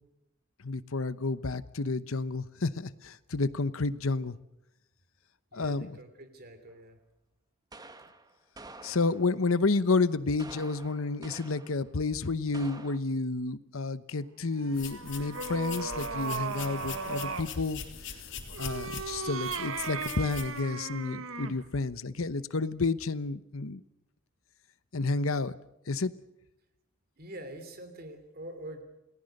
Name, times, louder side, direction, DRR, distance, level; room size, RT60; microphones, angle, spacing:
voice 1, 0.6-4.4 5.5-5.9 8.8-17.8 18.6-23.8 24.9-25.5 25.9-26.1, left 3 dB, 80° left, 15 dB, 1.0 m, -30 dB
voice 2, 5.5-7.0 27.2-28.8, right 1 dB, 45° right, 8 dB, 3.1 m, -45 dB
sound 1, 6.7-6.8 7.7-9.5 10.4-11.9 12.5-13.0, right 2 dB, 20° right, 1.3 m, -49 dB
sound 2, 14.5-17.5 18.5-21.6, right 4 dB, 75° right, 1.5 m, -36 dB
sound 3, 14.7-20.6, left 6 dB, 60° left, 3.3 m, -43 dB
28.5 x 19.0 x 6.6 m, 0.87 s
head